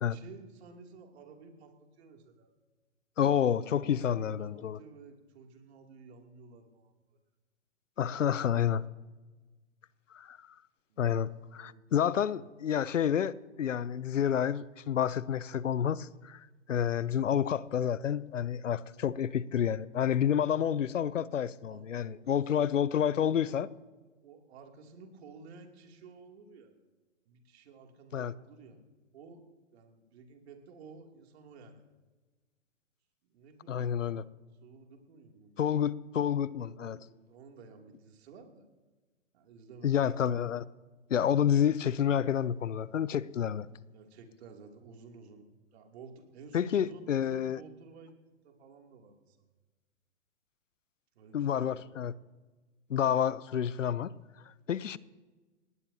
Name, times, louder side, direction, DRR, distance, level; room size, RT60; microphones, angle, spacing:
voice 1, 0.1-2.5 3.8-6.9 8.0-8.3 10.9-11.0 11.6-12.5 18.9-19.2 20.1-20.4 21.7-23.5 24.2-26.7 27.3-28.8 29.1-29.4 29.7-31.8 33.2-34.3 34.6-35.7 36.6-38.7 39.3-40.1 43.9-45.4 45.7-48.1 48.4-49.4 51.1-51.8, right 4 dB, 60° right, 2.8 m, -53 dB
voice 2, 3.2-4.8 8.0-8.8 10.1-10.4 11.0-13.3 13.6-16.4 16.7-23.7 28.1-28.3 33.7-34.2 35.6-37.0 39.8-40.6 41.1-43.7 46.5-47.6 51.3-52.1 52.9-54.1 54.7-55.0, left 9 dB, 85° left, 0.7 m, -29 dB
19.5 x 18.0 x 2.8 m
hypercardioid pair, 125°, 37 cm